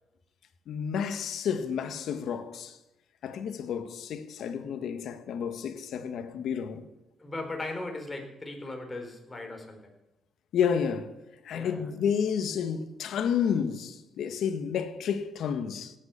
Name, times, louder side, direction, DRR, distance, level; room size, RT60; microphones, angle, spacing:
voice 1, 0.7-2.8 3.2-6.8 10.5-11.1 11.4-15.9, left 7 dB, 70° left, 1.6 m, -30 dB
voice 2, 7.2-9.9 11.5-11.9, left 2 dB, 20° left, 4.2 m, -38 dB
17.0 x 9.3 x 7.1 m
cardioid pair, 90°, 0 cm